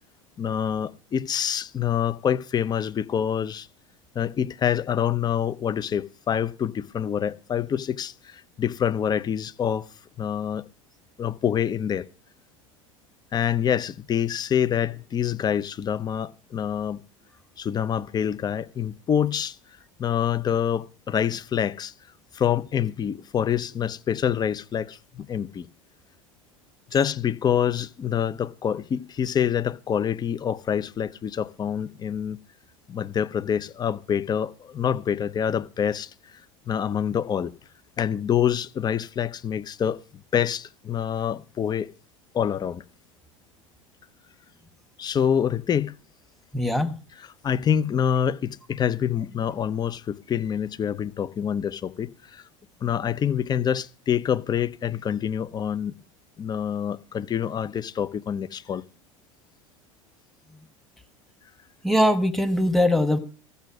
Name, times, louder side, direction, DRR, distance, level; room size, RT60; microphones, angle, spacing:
voice 1, 0.4-3.7 4.1-9.9 10.2-10.7 11.2-12.1 13.3-17.0 17.6-19.6 20.0-21.9 22.3-25.7 26.9-32.4 32.9-36.1 36.7-37.5 38.0-40.0 40.3-41.9 42.3-42.8 45.0-45.9 47.4-52.4 52.8-55.9 56.4-58.8, left 8 dB, 25° left, 0.7 m, -26 dB
voice 2, 46.5-46.9 61.8-63.2, left 1 dB, ahead, 1.5 m, -21 dB
14.0 x 6.7 x 6.2 m
figure-of-eight pair, 75°, 17 cm